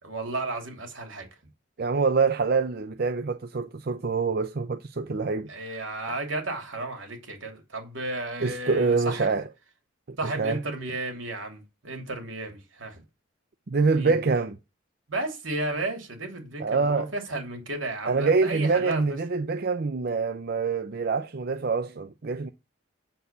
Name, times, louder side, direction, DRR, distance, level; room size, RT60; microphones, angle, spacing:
voice 1, 0.0-1.3 5.5-9.4 10.2-13.0 13.9-14.2 15.1-19.2, right 2 dB, 85° right, 2.9 m, -33 dB
voice 2, 1.8-5.5 8.4-9.4 10.1-10.6 13.7-14.6 16.6-17.1 18.1-22.5, right 4 dB, 50° right, 0.5 m, -25 dB
8.0 x 4.5 x 6.9 m
head